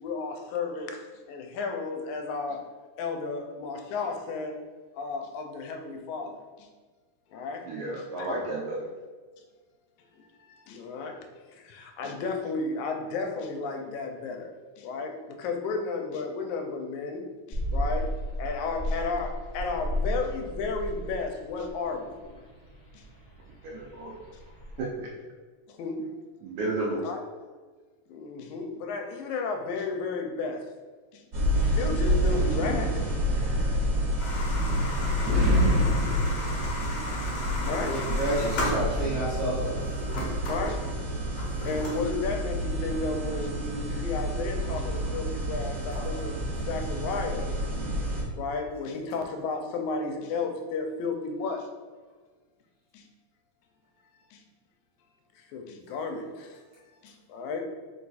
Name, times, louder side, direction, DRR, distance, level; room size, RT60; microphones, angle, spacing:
voice 1, 0.0-1.0 1.3-2.6 3.0-4.6 5.0-6.4 7.3-7.7 7.9-8.3 10.7-11.2 11.6-14.5 14.8-18.1 18.4-22.2 25.8-26.0 27.0-27.2 28.1-30.7 31.6-33.0 35.2-35.4 37.6-38.1 40.4-40.9 41.6-46.4 46.7-47.6 48.4-51.7 52.9-53.0 54.3-54.4 55.5-56.5 57.0-57.6, left 4 dB, 85° left, 4 dB, 2.0 m, -33 dB
voice 2, 7.7-8.9 23.5-24.2 24.8-25.1 26.4-27.1, right 2 dB, 85° right, -2 dB, 1.9 m, -32 dB
sound 1, 17.5-24.8, equal, 45° left, 0.6 m, -34 dB
sound 2, 31.3-48.2, equal, 50° right, 1.2 m, -28 dB
sound 3, 34.2-39.3 39.7-42.3, left 2 dB, 65° left, 1.4 m, -35 dB
voice 3, 37.9-39.7 46.0-46.1, right 1 dB, 70° right, -7 dB, 1.7 m, -30 dB
4.7 x 2.3 x 4.1 m, 1.4 s
omnidirectional pair, 3.3 m